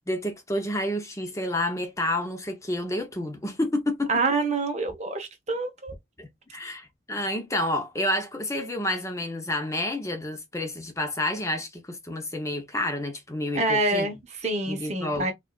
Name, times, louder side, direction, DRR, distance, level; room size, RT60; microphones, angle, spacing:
voice 1, 0.1-4.1 6.2-14.1 14.7-15.3, left 1 dB, 15° left, 0.6 m, -29 dB
voice 2, 4.1-5.9 13.5-15.3, right 2 dB, 40° right, 0.9 m, -26 dB
4.7 x 2.4 x 2.3 m
head